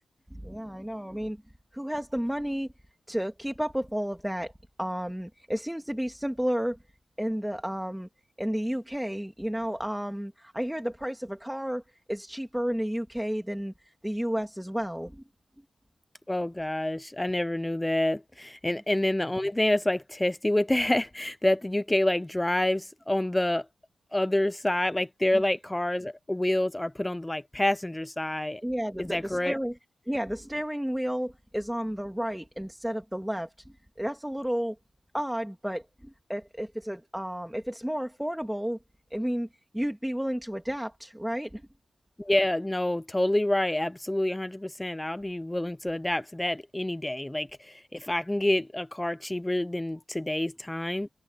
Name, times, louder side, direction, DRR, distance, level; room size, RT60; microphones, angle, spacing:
voice 1, 0.3-1.4 1.7-2.7 3.1-4.5 4.8-6.8 7.2-8.1 8.4-11.8 12.1-15.2 25.3-25.4 28.6-29.7 30.1-34.8 35.1-38.8 39.1-39.5 39.7-41.6, equal, 5° right, 2.7 m, -32 dB
voice 2, 16.3-23.7 24.1-28.6 29.0-29.6 42.2-51.1, left 1 dB, 10° left, 0.7 m, -27 dB
cardioid pair, 75°, 0 cm